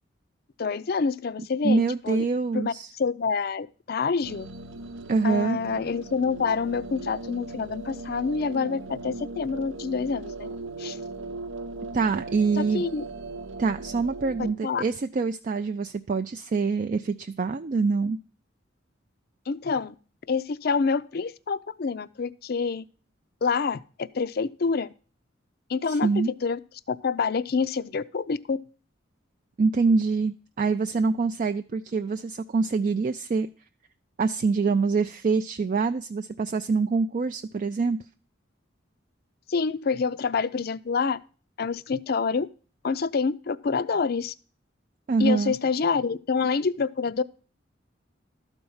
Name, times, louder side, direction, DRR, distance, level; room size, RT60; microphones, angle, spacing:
voice 1, 0.6-2.2 2.5-4.5 5.2-10.5 10.8-11.0 12.6-13.0 14.6-14.8 19.5-19.9 20.3-22.8 23.4-24.9 25.7-26.6 26.9-28.6 39.5-41.2 41.6-42.5 42.8-44.3 45.2-47.2, left 5 dB, 50° left, 0.4 m, -27 dB
voice 2, 1.6-2.9 5.1-5.6 11.9-12.8 13.6-18.2 25.9-26.3 29.6-33.5 34.2-38.0 45.1-45.5, right 4 dB, 40° right, 0.3 m, -25 dB
sound 1, 4.2-14.5, right 3 dB, 80° right, 0.8 m, -38 dB
12.5 x 4.5 x 5.5 m
head